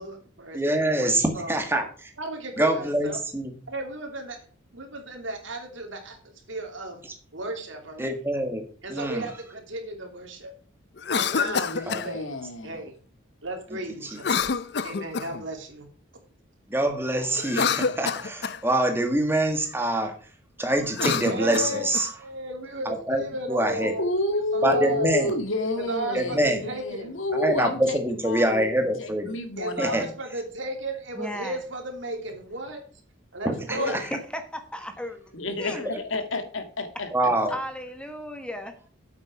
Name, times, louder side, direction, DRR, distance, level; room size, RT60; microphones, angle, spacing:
voice 1, 0.0-1.6 2.2-3.2 3.7-4.4 4.7-7.0 7.3-8.1 8.8-10.5 11.2-12.3 12.6-12.9 13.4-14.4 14.8-15.9 21.3-24.0 24.5-25.2 25.8-27.2 29.6-32.8 33.3-34.1, right 2 dB, 75° right, 2.9 m, -34 dB
voice 2, 0.5-2.1 2.6-3.5 8.0-8.6 8.9-9.3 11.9-12.0 16.7-20.1 20.6-22.1 22.9-23.2 23.5-23.9 24.6-25.3 26.1-26.6 27.3-29.3 29.8-30.1 33.4-34.0 37.1-37.5, right 1 dB, 10° right, 1.7 m, -25 dB
Cough, 11.0-12.1 14.2-15.4 17.4-18.6 20.8-22.1, left 6 dB, 55° left, 0.5 m, -27 dB
voice 3, 11.3-12.8 23.8-28.6 29.0-30.1 33.6-33.9 35.3-37.1, left 2 dB, 85° left, 1.8 m, -30 dB
voice 4, 31.1-31.6 34.0-35.2 35.6-35.9 37.5-38.8, equal, 5° left, 1.2 m, -35 dB
9.0 x 8.2 x 4.7 m
head